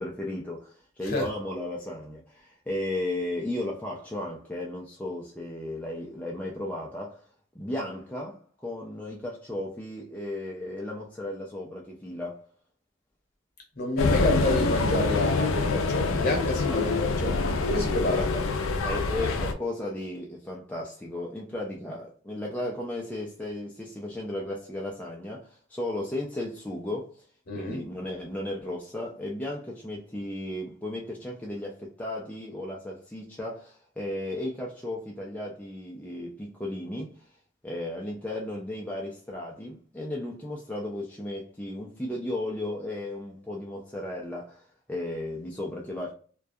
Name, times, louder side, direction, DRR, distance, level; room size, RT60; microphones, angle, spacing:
voice 1, 0.0-7.3 7.5-12.5 16.7-16.9 18.0-18.4 18.8-27.3 27.5-37.3 37.6-46.1, left 1 dB, 5° left, 0.3 m, -35 dB
voice 2, 13.7-18.3 27.5-27.8, left 1 dB, 45° left, 0.9 m, -29 dB
sound 1, 14.0-19.5, left 3 dB, 80° left, 0.4 m, -26 dB
2.2 x 2.2 x 2.6 m
head